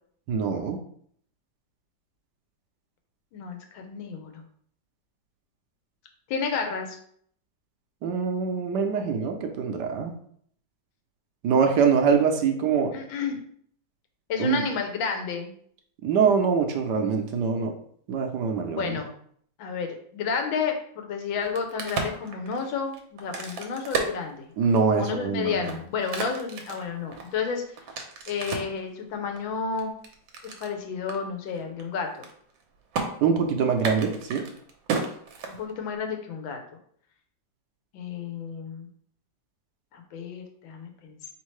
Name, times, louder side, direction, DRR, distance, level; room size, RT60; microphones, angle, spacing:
voice 1, 0.3-0.8 8.0-10.1 11.4-12.9 14.4-14.6 16.0-17.7 18.1-19.0 24.6-25.6 33.2-34.4, right 6 dB, 70° right, 4 dB, 1.2 m, -24 dB
voice 2, 3.3-4.4 6.3-7.0 12.9-13.4 14.3-15.5 18.7-19.1 19.6-24.5 25.0-27.6 28.3-29.9 30.4-32.2 35.5-36.6 37.9-38.9 39.9-41.3, left 5 dB, 90° left, 4 dB, 1.6 m, -31 dB
Crack, 21.3-25.0 25.5-28.8 29.4-30.7 31.1-31.2 31.5-31.8 32.1-32.6 32.9-33.1 33.7-36.0, right 4 dB, 85° right, 1.5 m, -33 dB
4.3 x 3.6 x 3.1 m, 0.62 s
omnidirectional pair, 2.0 m